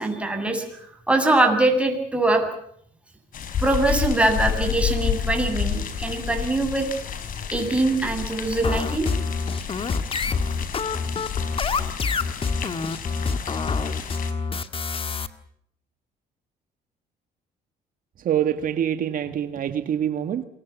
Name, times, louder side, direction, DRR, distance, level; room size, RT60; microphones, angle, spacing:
voice 1, 0.0-2.4 3.6-6.9 7.5-9.1, right 2 dB, 5° right, 4 dB, 7.6 m, -22 dB
sound 1, 3.3-14.3, left 8 dB, 55° left, 5.2 m, -30 dB
sound 2, 8.6-15.3, left 4 dB, 30° left, 1.9 m, -26 dB
voice 2, 18.2-20.4, right 9 dB, 55° right, 10 dB, 1.8 m, -25 dB
27.0 x 23.0 x 7.2 m, 0.67 s
cardioid pair, 110°, 17 cm